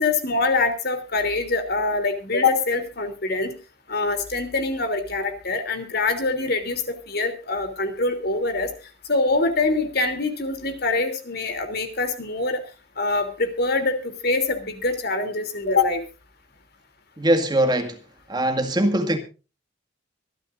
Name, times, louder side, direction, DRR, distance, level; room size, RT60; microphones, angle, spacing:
voice 1, 0.0-3.5 3.9-8.7 9.1-12.6 13.0-16.0, left 3 dB, 55° left, 3.1 m, -24 dB
voice 2, 17.2-18.0 18.3-19.2, right 1 dB, 20° right, 1.9 m, -21 dB
25.0 x 12.5 x 2.6 m
head